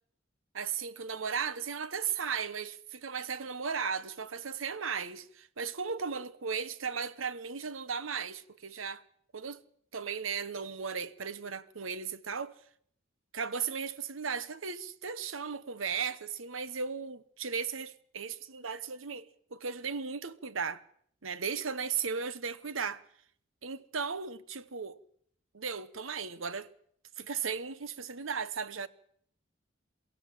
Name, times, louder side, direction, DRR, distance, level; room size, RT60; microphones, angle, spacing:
voice 1, 0.5-9.0 9.3-9.6 9.9-12.6 13.3-19.3 19.5-20.8 21.2-23.0 23.6-25.0 25.5-26.7 27.2-28.9, right 6 dB, 90° right, 1.0 m, -36 dB
22.5 x 16.0 x 7.6 m
head